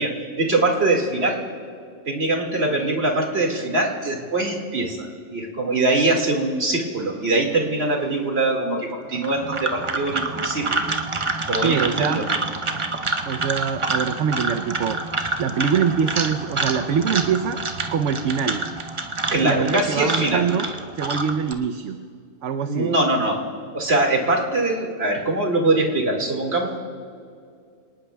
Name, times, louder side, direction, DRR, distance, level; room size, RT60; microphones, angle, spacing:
voice 1, 0.0-1.4 2.1-10.8 11.5-12.2 19.3-20.5 22.7-23.4 23.7-26.8, right 2 dB, 50° right, 1 dB, 2.3 m, -22 dB
sound 1, 9.1-21.5, right 3 dB, 30° right, 0.7 m, -27 dB
voice 2, 11.6-12.2 13.2-15.0 15.4-17.6 17.9-18.6 19.4-20.7 20.9-22.0 22.4-23.0, right 7 dB, 70° right, 7 dB, 1.0 m, -24 dB
27.0 x 19.0 x 2.3 m, 2.3 s
omnidirectional pair, 1.4 m